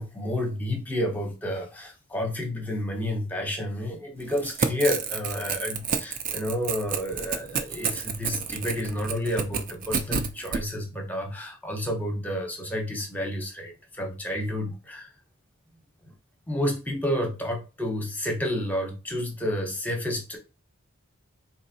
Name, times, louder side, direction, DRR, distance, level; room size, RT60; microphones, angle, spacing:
voice 1, 0.0-15.1 16.5-20.4, left 1 dB, 5° left, 2 dB, 0.7 m, -30 dB
Crackle / Tearing, 4.2-10.6, right 6 dB, 40° right, 0.4 m, -30 dB
4.0 x 2.7 x 2.7 m, 0.30 s
head